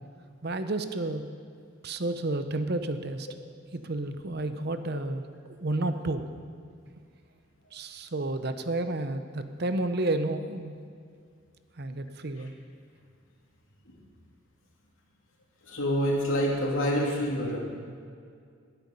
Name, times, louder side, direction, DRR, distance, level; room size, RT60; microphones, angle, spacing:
voice 1, 0.4-1.2 1.8-3.3 3.7-5.2 5.6-6.2 7.7-10.7 11.8-12.5, right 2 dB, 50° right, 9 dB, 0.8 m, -31 dB
voice 2, 15.7-17.6, equal, 80° left, -2 dB, 2.9 m, -26 dB
20.5 x 9.0 x 5.5 m, 2.2 s
head